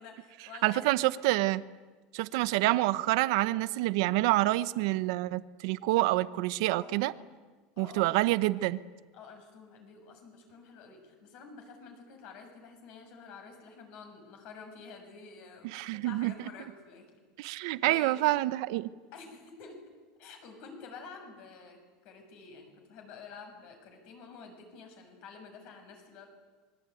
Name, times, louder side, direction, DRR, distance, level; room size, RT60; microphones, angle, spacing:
voice 1, 0.0-1.0 6.7-7.3 7.8-8.5 9.1-17.2 17.6-18.2 19.1-19.8 20.2-26.3, left 5 dB, 45° left, 5 dB, 6.8 m, -49 dB
voice 2, 0.6-1.6 2.1-7.1 7.8-8.8 15.7-16.3 17.4-18.9, right 18 dB, 60° right, 14 dB, 1.0 m, -27 dB
26.5 x 23.0 x 9.3 m, 1.4 s
cardioid pair, 175°, 3 cm